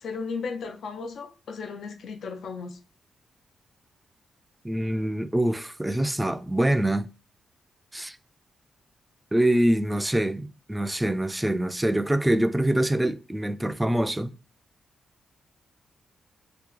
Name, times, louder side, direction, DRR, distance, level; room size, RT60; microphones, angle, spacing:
voice 1, 0.0-2.8, left 4 dB, 70° left, 0.4 m, -35 dB
voice 2, 4.6-7.1 7.9-8.2 9.3-14.3, right 1 dB, 10° right, 0.3 m, -25 dB
2.8 x 2.2 x 3.7 m
supercardioid pair, 60°, 0 cm